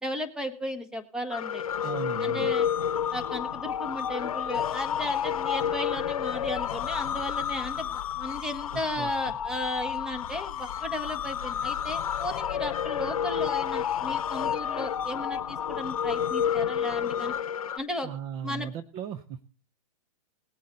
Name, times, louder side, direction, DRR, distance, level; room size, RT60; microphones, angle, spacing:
voice 1, 0.0-1.6 2.2-2.7 3.1-17.3 17.8-18.1 18.4-18.7, left 1 dB, 5° right, 7 dB, 1.5 m, -35 dB
sound 1, 1.3-17.8, left 9 dB, 80° left, 0.8 m, -30 dB
voice 2, 1.8-2.5 8.7-9.4 18.0-19.4, right 8 dB, 30° right, 12 dB, 0.7 m, -37 dB
19.0 x 8.3 x 4.0 m, 0.42 s
hypercardioid pair, 135°, 18 cm